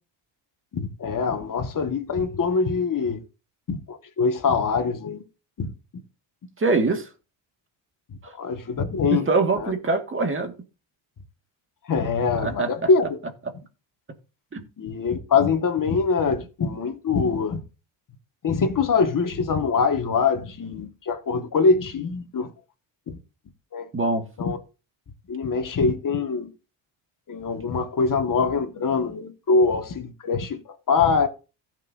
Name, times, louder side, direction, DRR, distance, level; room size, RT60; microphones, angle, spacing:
voice 1, 0.7-3.2 3.7-5.2 5.6-5.7 8.4-9.3 9.6-9.7 11.9-13.2 14.8-17.6 18.4-22.5 23.1-23.2 23.7-23.9 24.4-24.6 25.3-26.5 27.3-31.3, left 4 dB, 40° left, 2.1 m, -23 dB
voice 2, 6.6-7.1 8.2-8.3 9.1-10.5 12.4-12.7 14.5-14.7 23.9-24.2, right 3 dB, 25° right, 2.2 m, -23 dB
15.5 x 6.9 x 2.8 m
cardioid pair, 110°, 49 cm